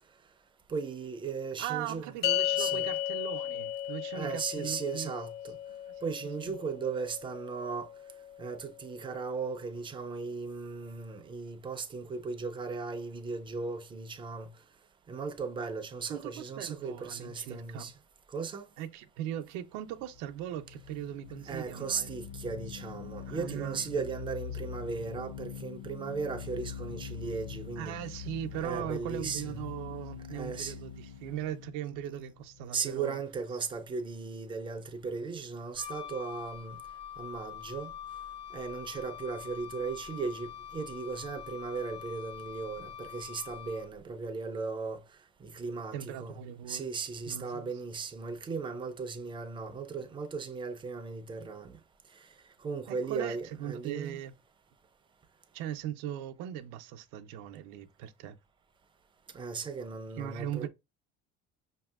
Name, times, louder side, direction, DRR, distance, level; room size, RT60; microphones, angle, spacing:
voice 1, 0.7-2.1 2.5-2.9 4.1-5.6 6.0-7.9 8.4-14.5 15.1-17.9 18.3-18.7 21.5-28.0 28.6-29.7 30.3-30.8 32.7-36.8 37.2-37.9 38.5-45.0 45.4-46.4 46.7-51.8 52.6-54.2 59.3-60.7, right 5 dB, 15° right, 0.4 m, -37 dB
voice 2, 1.6-5.1 5.7-5.9 6.4-6.6 16.1-17.9 18.8-22.1 23.2-23.8 27.8-33.2 45.9-46.9 47.3-47.7 52.9-54.3 55.5-58.4 60.2-60.7, right 11 dB, 85° right, 0.6 m, -39 dB
sound 1, 2.2-8.8, left 12 dB, 85° left, 0.5 m, -35 dB
sound 2, 20.0-33.2, left 7 dB, 65° left, 1.3 m, -44 dB
Wind instrument woodwind instrument, 35.7-44.1, left 9 dB, 40° left, 0.6 m, -44 dB
5.1 x 2.7 x 2.3 m
cardioid pair, 145°, 29 cm